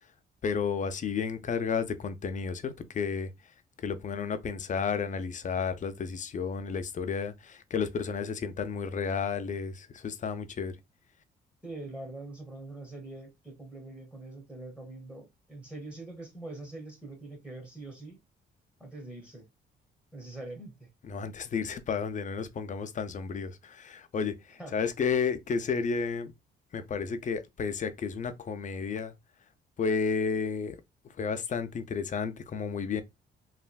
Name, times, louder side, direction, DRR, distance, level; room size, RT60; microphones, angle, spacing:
voice 1, 0.4-3.3 3.8-10.7 21.0-26.3 26.7-29.1 29.8-30.8 31.2-33.0, left 5 dB, 40° left, 0.5 m, -32 dB
voice 2, 11.6-18.2 18.8-19.5 20.1-20.9 24.6-24.7, right 2 dB, 5° right, 1.0 m, -43 dB
3.2 x 2.5 x 2.2 m
cardioid pair, 90°, 20 cm